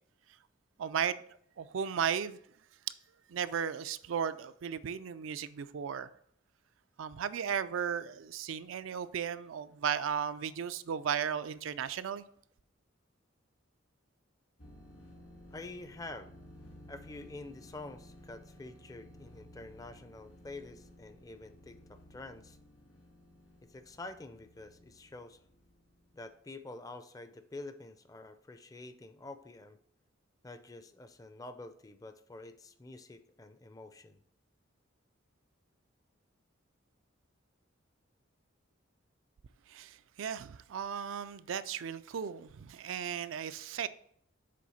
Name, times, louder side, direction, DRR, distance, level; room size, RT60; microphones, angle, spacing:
voice 1, 0.8-1.2 1.6-2.4 3.3-6.1 7.0-12.2 39.7-43.9, right 7 dB, 75° right, 0.4 m, -35 dB
sound 1, 14.6-26.3, left 1 dB, 70° left, 2.1 m, -56 dB
voice 2, 15.5-16.3 16.9-22.6 23.6-25.4 26.1-29.8 30.4-34.2, left 2 dB, 20° left, 0.4 m, -47 dB
7.6 x 3.5 x 5.6 m
head